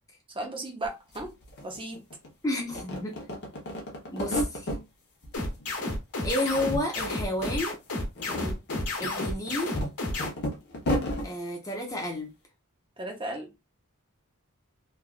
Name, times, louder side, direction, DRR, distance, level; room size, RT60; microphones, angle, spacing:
voice 1, 0.3-1.3 1.6-2.0 8.3-8.6 13.0-13.5, right 1 dB, 25° right, 0.7 m, -35 dB
sound 1, 0.8-0.9 1.1-2.3 2.6-4.8 5.2-6.0 6.2-7.1 7.4-7.5 8.0-11.3, equal, 50° left, 0.9 m, -33 dB
voice 2, 2.4-3.2 4.1-4.7 6.2-7.7 9.0-9.8 11.2-12.3, left 1 dB, 15° left, 0.5 m, -31 dB
sound 2, 5.3-10.3, left 2 dB, 85° left, 1.2 m, -31 dB
3.2 x 2.4 x 2.4 m
head